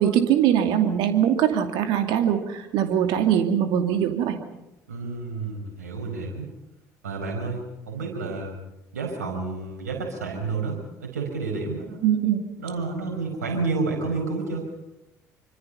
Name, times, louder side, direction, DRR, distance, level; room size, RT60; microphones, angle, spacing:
voice 1, 0.0-4.4 12.0-12.4, right 9 dB, 65° right, 6 dB, 2.6 m, -22 dB
voice 2, 4.9-6.5 7.0-8.6 8.9-12.0 12.6-14.7, right 3 dB, 80° right, 1 dB, 5.1 m, -30 dB
26.0 x 25.5 x 5.6 m, 0.90 s
hypercardioid pair, 55°, 9 cm